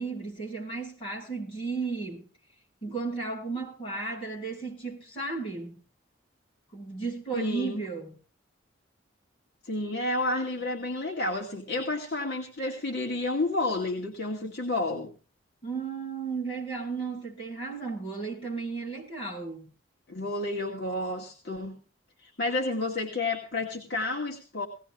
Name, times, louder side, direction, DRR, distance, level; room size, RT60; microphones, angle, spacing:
voice 1, 0.0-2.2 2.8-5.8 6.7-8.1 15.6-19.7, right 4 dB, 30° left, -2 dB, 7.7 m, -34 dB
voice 2, 7.3-7.8 9.6-15.1 20.1-21.8 22.2-24.7, left 2 dB, 55° left, -1 dB, 2.3 m, -30 dB
19.5 x 17.0 x 2.5 m, 0.37 s
head